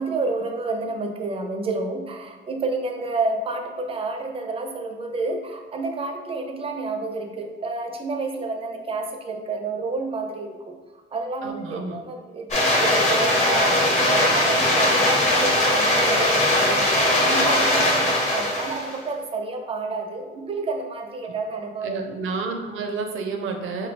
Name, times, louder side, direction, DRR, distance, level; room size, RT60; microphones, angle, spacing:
voice 1, 0.0-21.9, right 3 dB, 30° right, 4 dB, 0.4 m, -30 dB
voice 2, 11.4-12.0 17.9-18.1 21.2-21.3 21.8-23.9, right 4 dB, 75° right, 4 dB, 0.6 m, -30 dB
sound 1, 12.5-19.0, left 1 dB, 35° left, 0.9 m, -20 dB
4.4 x 2.2 x 3.2 m, 1.3 s
cardioid pair, 135°, 20 cm